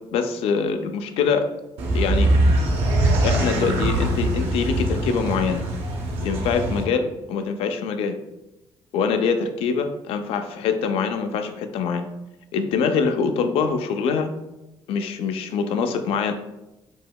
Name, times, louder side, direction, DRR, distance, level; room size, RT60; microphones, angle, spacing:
voice 1, 0.1-1.4 1.9-2.3 3.2-5.6 6.2-8.2 8.9-12.1 12.5-14.3 14.9-16.3, left 5 dB, 80° left, 7 dB, 0.4 m, -24 dB
sound 1, 1.8-6.8, right 1 dB, 90° right, 0.6 m, -22 dB
4.6 x 2.1 x 2.2 m, 0.96 s
cardioid pair, 80°, 10 cm